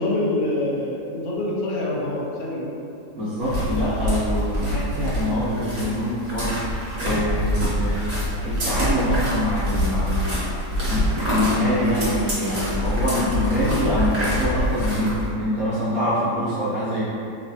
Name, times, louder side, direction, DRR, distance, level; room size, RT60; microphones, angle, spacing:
voice 1, 0.0-2.7, left 1 dB, 70° left, -5 dB, 0.7 m, -25 dB
voice 2, 3.1-8.1 8.4-10.5 10.9-17.0, equal, 60° right, -13 dB, 1.0 m, -25 dB
sound 1, 3.4-15.3, equal, 35° right, 0.7 m, -25 dB
3.0 x 2.9 x 2.7 m, 2.6 s
omnidirectional pair, 2.0 m